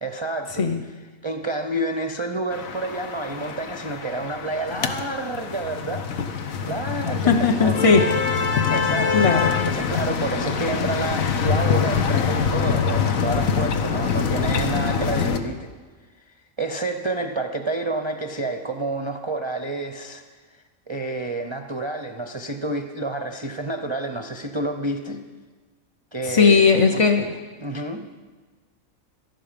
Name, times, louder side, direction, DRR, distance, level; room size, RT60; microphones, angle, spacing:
voice 1, 0.0-0.7 1.2-6.1 6.6-7.9 8.7-9.3 9.6-15.7 16.3-20.2 20.5-25.2 26.1-27.0 27.6-28.1, right 2 dB, 30° right, 5 dB, 0.5 m, -29 dB
sound 1, 2.5-15.4, left 6 dB, 85° left, 1.4 m, -24 dB
voice 2, 7.2-8.0 9.1-9.7 26.2-27.4, left 5 dB, 35° left, 4 dB, 0.6 m, -18 dB
18.0 x 13.5 x 5.1 m, 1.4 s
omnidirectional pair, 1.4 m